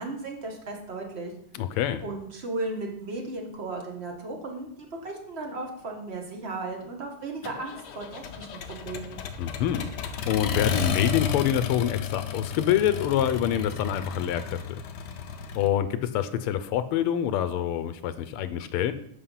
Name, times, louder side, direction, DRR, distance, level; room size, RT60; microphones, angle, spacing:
voice 1, 0.0-1.3 2.0-9.2, right 2 dB, 35° right, 2 dB, 1.4 m, -35 dB
voice 2, 1.5-2.0 9.4-9.9 10.3-14.8 15.5-18.9, left 10 dB, 85° left, 12 dB, 1.6 m, -26 dB
Accelerating revving vroom, 7.4-15.7, left 7 dB, 60° left, 1.2 m, -32 dB
8.6 x 5.7 x 5.6 m, 0.73 s
omnidirectional pair, 2.4 m